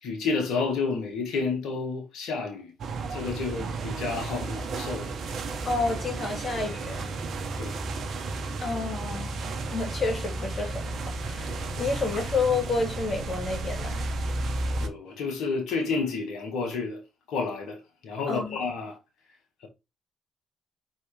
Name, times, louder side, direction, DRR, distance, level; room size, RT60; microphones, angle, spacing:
voice 1, 0.0-2.7 3.1-5.1 7.6-7.8 14.8-17.0 17.3-19.0 19.6-19.7, left 4 dB, 70° left, 1.6 m, -30 dB
sound 1, 2.8-14.9, right 3 dB, 60° right, 1.2 m, -33 dB
voice 2, 5.6-7.1 8.6-9.4 9.7-14.0 18.3-18.6, left 3 dB, 40° left, 2.6 m, -30 dB
4.8 x 4.1 x 4.9 m
hypercardioid pair, 50°, 0 cm